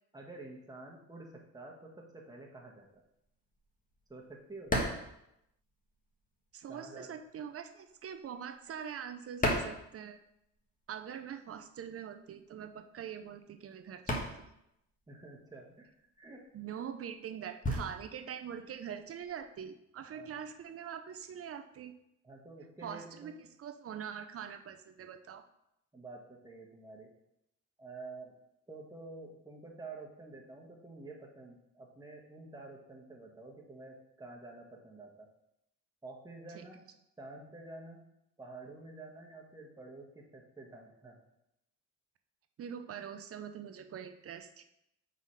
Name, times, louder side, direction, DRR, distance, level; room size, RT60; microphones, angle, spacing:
voice 1, 0.1-3.0 4.1-4.7 6.7-7.1 15.1-15.9 16.2-16.5 20.1-20.4 22.2-23.4 25.9-27.1 27.8-28.3 28.7-35.3 36.0-36.8 37.2-38.0 38.4-41.2, right 3 dB, 15° right, -1 dB, 1.3 m, -49 dB
sound 1, 2.9-6.2 6.5-10.6 10.9-19.6, left 1 dB, 25° left, 1.4 m, -38 dB
voice 2, 6.5-10.2 10.9-14.5 16.5-21.9 22.8-23.3 23.6-25.4 36.5-36.6 42.6-44.6, right 8 dB, 50° right, 8 dB, 0.6 m, -43 dB
4.8 x 4.0 x 5.6 m, 0.82 s
cardioid pair, 90°, 30 cm